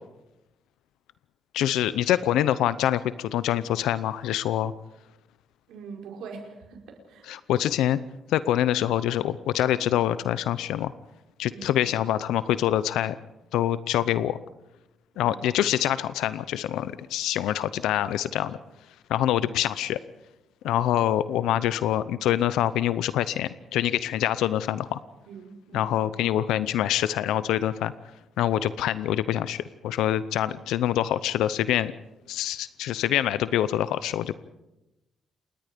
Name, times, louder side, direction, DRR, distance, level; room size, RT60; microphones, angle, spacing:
voice 1, 1.5-4.7 7.3-8.0 8.3-10.9 11.4-13.1 13.5-14.4 15.2-18.6 19.1-20.0 20.6-25.0 25.7-27.9 28.4-31.9 32.3-34.4, left 12 dB, 90° left, 15 dB, 0.7 m, -25 dB
voice 2, 5.7-7.4 11.5-11.8 15.1-15.5 19.2-19.5 25.3-26.0, right 5 dB, 80° right, 2 dB, 5.0 m, -43 dB
28.0 x 22.0 x 5.2 m, 0.96 s
cardioid pair, 90°, 0 cm